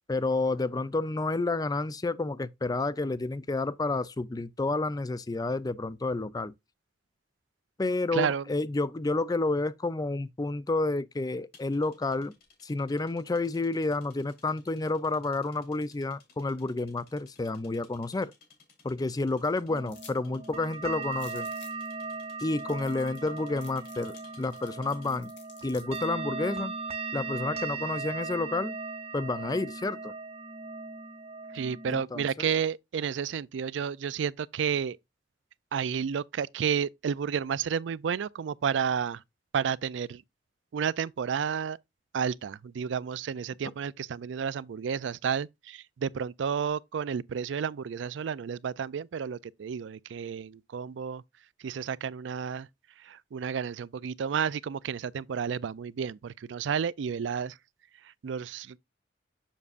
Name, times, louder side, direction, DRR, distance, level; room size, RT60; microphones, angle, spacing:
voice 1, 0.1-6.5 7.8-12.3 12.6-18.3 18.8-21.5 22.4-25.3 25.6-26.7 27.1-28.8 29.1-30.1 31.9-32.5, left 2 dB, 20° left, 0.4 m, -30 dB
voice 2, 8.1-8.4 31.5-35.0 35.7-39.2 39.5-40.2 40.7-41.8 42.1-51.2 51.6-52.7 53.0-57.6 58.0-58.8, right 7 dB, 85° right, 0.4 m, -31 dB
sound 1, 11.5-25.3, left 4 dB, 55° left, 3.7 m, -60 dB
sound 2, 19.7-32.0, right 4 dB, 35° right, 0.7 m, -38 dB
sound 3, 19.9-20.2 20.5-20.6 21.1-21.9 22.4-22.5 22.7-23.3 23.6-26.1, left 6 dB, 85° left, 2.6 m, -52 dB
7.3 x 6.7 x 2.5 m
head